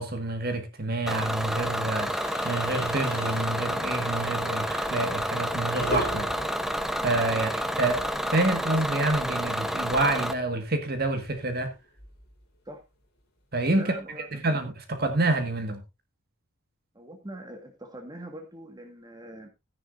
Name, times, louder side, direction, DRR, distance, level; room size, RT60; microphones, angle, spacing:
voice 1, 0.0-2.1 2.4-6.3 7.0-11.7 13.5-13.9 14.3-15.8, right 2 dB, 45° right, 1.7 m, -28 dB
Bus / Engine, 1.1-10.3, equal, ahead, 0.6 m, -29 dB
sound 1, 2.0-8.0 8.3-8.5 8.7-8.8 10.1-12.4, left 1 dB, 45° left, 3.9 m, -40 dB
voice 2, 13.8-14.3 16.9-19.5, right 1 dB, 20° right, 1.7 m, -42 dB
13.5 x 10.0 x 2.6 m
head